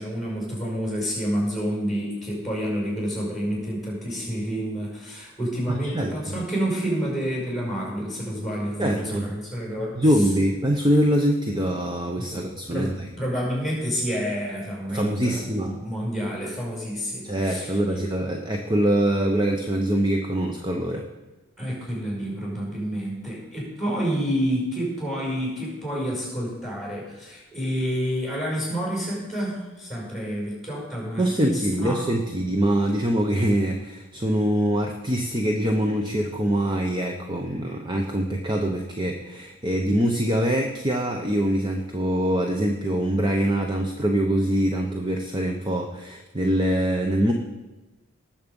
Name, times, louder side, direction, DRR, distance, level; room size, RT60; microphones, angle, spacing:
voice 1, 0.0-10.2 12.2-18.0 21.6-32.0, equal, ahead, -4 dB, 5.7 m, -29 dB
voice 2, 8.8-9.3 10.0-12.9 14.9-15.8 17.2-21.1 31.2-47.3, right 1 dB, 20° right, 3 dB, 0.8 m, -24 dB
19.0 x 7.3 x 5.4 m, 1.1 s
head